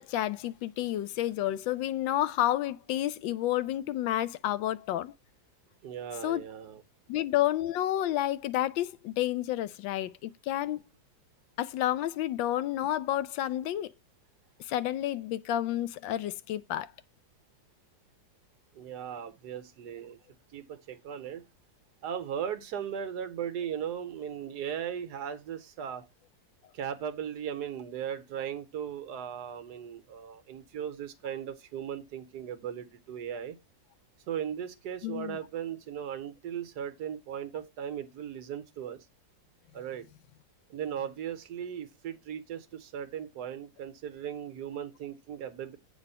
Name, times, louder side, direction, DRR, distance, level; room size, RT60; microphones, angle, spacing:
voice 1, 0.0-5.1 6.2-6.4 7.1-10.8 11.6-13.9 14.7-16.9 35.0-35.4, left 13 dB, 85° left, 1.3 m, -30 dB
voice 2, 5.8-6.8 18.7-20.2 20.5-21.4 22.0-26.0 26.7-33.6 34.3-39.0 39.7-40.0 40.7-45.8, right 9 dB, 65° right, 1.2 m, -37 dB
8.2 x 3.4 x 5.3 m
omnidirectional pair, 2.0 m